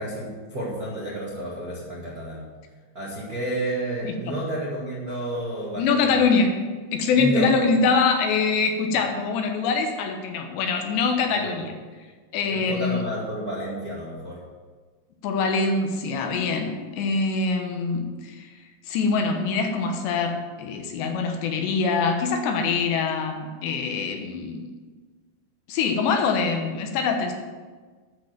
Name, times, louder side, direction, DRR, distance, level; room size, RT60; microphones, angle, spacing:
voice 1, 0.0-2.4 2.9-6.2 7.2-7.5 11.4-11.6 12.5-14.4, right 1 dB, 75° right, -5 dB, 0.8 m, -31 dB
voice 2, 5.8-6.6 6.9-11.7 12.3-13.0 15.2-18.5 18.9-24.7 25.7-27.3, left 4 dB, 80° left, 4 dB, 3.2 m, -24 dB
12.0 x 5.3 x 7.5 m, 1.4 s
omnidirectional pair, 5.1 m